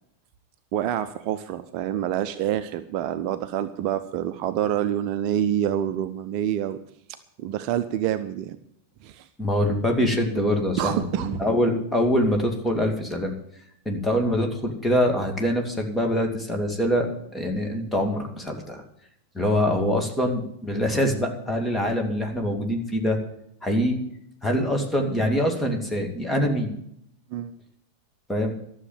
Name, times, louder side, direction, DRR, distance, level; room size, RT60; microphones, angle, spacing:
voice 1, 0.7-6.8 7.4-8.6 9.0-9.3 10.8-11.5 27.3-27.6, right 10 dB, 45° right, 10 dB, 0.7 m, -27 dB
voice 2, 9.4-13.3 13.9-17.1 17.3-18.8 19.3-23.2 23.6-24.0 24.4-26.7 28.3-28.5, equal, 10° left, 3 dB, 2.5 m, -24 dB
13.0 x 7.3 x 9.3 m, 0.73 s
figure-of-eight pair, 90°, 0 cm